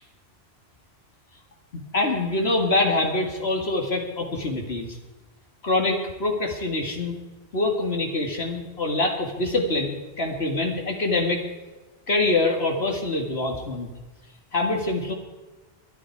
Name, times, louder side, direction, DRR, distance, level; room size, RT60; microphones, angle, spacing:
voice 1, 1.7-5.0 5.6-7.2 7.5-11.4 12.1-13.9 14.5-15.1, left 2 dB, 80° left, 2 dB, 2.4 m, -25 dB
22.0 x 11.5 x 4.8 m, 1.2 s
omnidirectional pair, 1.1 m